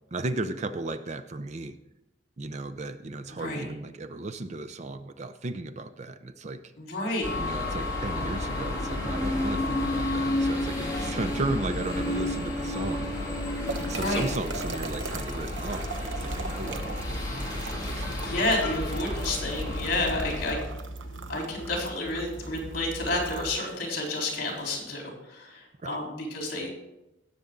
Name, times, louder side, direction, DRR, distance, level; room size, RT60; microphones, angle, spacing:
voice 1, 0.1-1.7 2.4-6.7 7.4-13.1 13.8-18.5 25.8-26.0, right 2 dB, 35° right, 10 dB, 0.5 m, -35 dB
voice 2, 6.8-7.4 13.9-14.3 17.8-17.9 18.2-20.6 21.3-26.7, left 2 dB, 55° left, -1 dB, 3.8 m, -30 dB
sound 1, 7.2-20.5, left 1 dB, 20° left, 3.0 m, -31 dB
sound 2, 11.8-24.8, right 4 dB, 80° right, 0.8 m, -42 dB
sound 3, 16.2-23.5, right 1 dB, 75° left, 1.0 m, -41 dB
17.5 x 6.8 x 3.8 m, 0.95 s
head